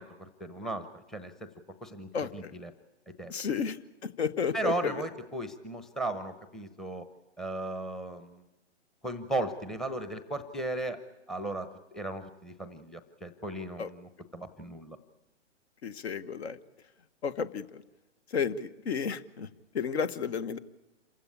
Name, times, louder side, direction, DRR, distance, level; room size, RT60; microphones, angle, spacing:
voice 1, 0.0-1.5 1.8-2.7 3.1-3.5 4.5-7.1 7.4-8.5 9.0-15.0, right 2 dB, ahead, 11 dB, 0.7 m, -36 dB
voice 2, 2.1-2.5 3.3-4.9 13.8-13.9 15.8-16.6 17.2-17.8 18.3-19.5 19.7-20.6, left 6 dB, 65° left, 15 dB, 1.3 m, -32 dB
27.0 x 15.5 x 8.5 m, 1.1 s
hypercardioid pair, 135°, 35 cm